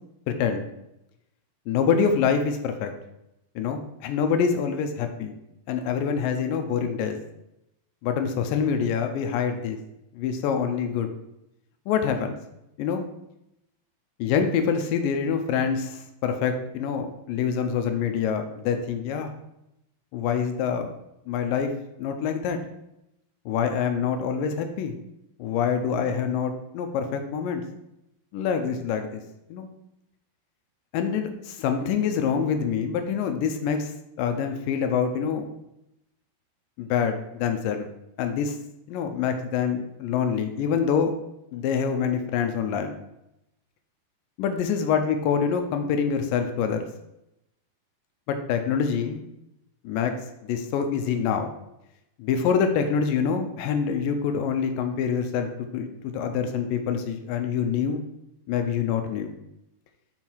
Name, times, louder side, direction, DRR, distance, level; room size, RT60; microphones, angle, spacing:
voice 1, 0.3-0.6 1.7-2.9 3.6-5.3 5.7-7.2 8.0-9.8 10.1-11.1 11.9-12.4 12.8-13.0 14.2-19.3 20.1-20.9 21.3-21.7 22.0-22.6 23.5-25.0 25.4-27.6 28.3-29.2 29.5-29.7 30.9-33.9 34.2-35.5 36.8-37.9 38.2-38.6 38.9-41.1 41.5-42.9 44.4-46.9 48.3-49.2 49.8-50.1 50.4-51.5 52.2-58.0 58.5-59.3, left 7 dB, 80° left, 6 dB, 2.1 m, -26 dB
5.7 x 5.4 x 4.5 m, 0.85 s
omnidirectional pair, 4.2 m